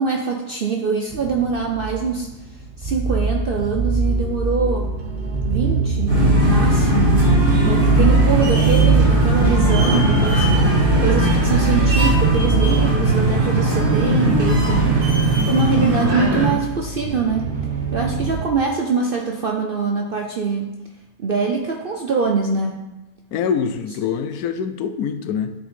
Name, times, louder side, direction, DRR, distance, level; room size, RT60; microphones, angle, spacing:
voice 1, 0.0-2.3 2.8-4.9 5.5-7.1 7.6-10.4 11.0-17.5 17.9-20.7 21.2-22.9, right 5 dB, 55° right, 1 dB, 0.6 m, -23 dB
sound 1, 1.1-18.5, right 3 dB, 35° right, 0.9 m, -22 dB
sound 2, 6.1-16.5, right 1 dB, 85° right, 3.1 m, -18 dB
voice 2, 23.3-25.5, left 7 dB, 75° left, 10 dB, 1.0 m, -24 dB
9.9 x 4.2 x 4.3 m, 1.0 s
omnidirectional pair, 1.6 m